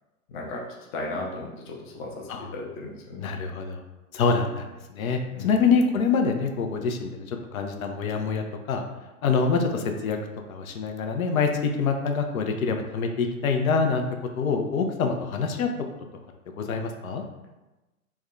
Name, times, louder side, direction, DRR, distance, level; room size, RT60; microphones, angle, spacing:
voice 1, 0.9-3.3 5.3-5.5, left 2 dB, 25° left, -2 dB, 0.4 m, -35 dB
voice 2, 3.2-3.8 4.1-8.8 9.2-10.2 10.5-14.0 14.4-15.7 16.6-17.2, left 5 dB, 70° left, 4 dB, 0.6 m, -25 dB
3.5 x 2.1 x 3.5 m, 1.1 s
hypercardioid pair, 115°, 44 cm